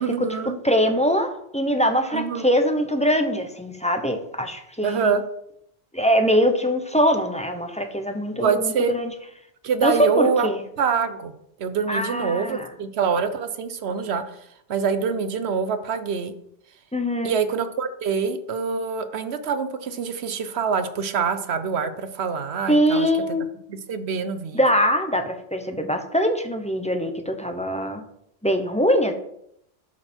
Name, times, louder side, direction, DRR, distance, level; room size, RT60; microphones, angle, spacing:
voice 1, 0.0-0.6 2.1-2.5 4.8-5.2 8.4-8.9 9.6-10.5 10.8-11.3 11.6-14.2 14.7-16.3 17.2-23.1 23.7-24.6, right 6 dB, 80° right, 10 dB, 1.1 m, -25 dB
voice 2, 0.6-5.1 5.9-9.1 9.8-10.6 11.9-12.7 16.9-17.4 22.7-23.4 24.5-28.0 28.4-29.1, equal, 5° left, 5 dB, 0.9 m, -22 dB
12.0 x 5.9 x 4.5 m, 0.75 s
omnidirectional pair, 1.1 m